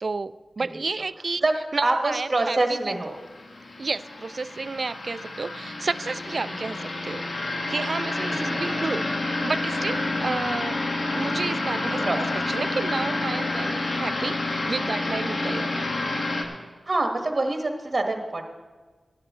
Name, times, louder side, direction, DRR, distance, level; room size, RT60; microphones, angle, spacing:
voice 1, 0.0-1.4 1.7-2.9 3.8-7.3 7.7-10.8 11.1-12.1 12.5-15.9, right 3 dB, 60° right, 17 dB, 0.3 m, -31 dB
voice 2, 1.8-3.1 6.5-6.6 8.1-8.6 10.2-10.5 11.8-12.3 15.4-15.5 16.8-18.4, right 2 dB, 40° right, 3 dB, 1.5 m, -26 dB
sound 1, 2.9-16.4, left 2 dB, 65° left, 1.5 m, -29 dB
14.5 x 11.0 x 3.7 m, 1.4 s
cardioid pair, 45°, 0 cm